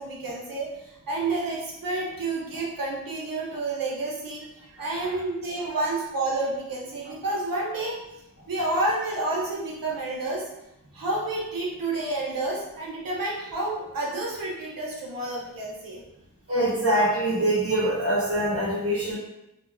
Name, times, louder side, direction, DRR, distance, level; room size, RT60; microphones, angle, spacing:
voice 1, 0.0-4.4 4.8-8.0 8.5-10.5 10.9-16.0, right 2 dB, 80° right, -3 dB, 0.8 m, -29 dB
voice 2, 16.5-19.2, right 1 dB, 45° right, -6 dB, 0.9 m, -24 dB
2.8 x 2.3 x 2.5 m, 0.90 s
wide cardioid pair, 60°, 34 cm